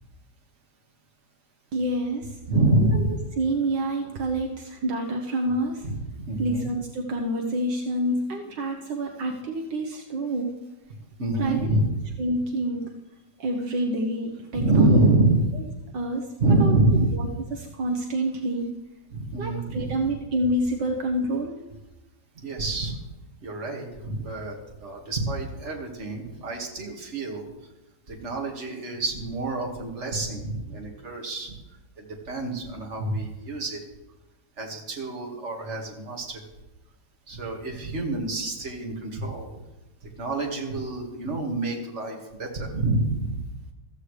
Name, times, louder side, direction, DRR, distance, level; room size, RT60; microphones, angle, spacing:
voice 1, 1.7-2.4 2.9-3.0 3.4-5.9 6.4-10.6 11.4-11.7 12.2-12.9 13.4-15.0 15.9-16.3 16.6-16.7 17.1-18.8 19.4-21.6, right 1 dB, 70° right, 2 dB, 1.7 m, -28 dB
voice 2, 2.5-3.2 5.8-6.6 11.2-11.9 14.5-15.4 16.4-17.2 19.1-20.1 22.4-23.0 23.4-27.4 28.1-31.5 32.0-33.8 34.6-36.4 37.3-39.5 40.2-43.4, right 2 dB, 40° right, 1 dB, 2.1 m, -26 dB
14.5 x 14.5 x 3.3 m, 1.0 s
omnidirectional pair, 2.0 m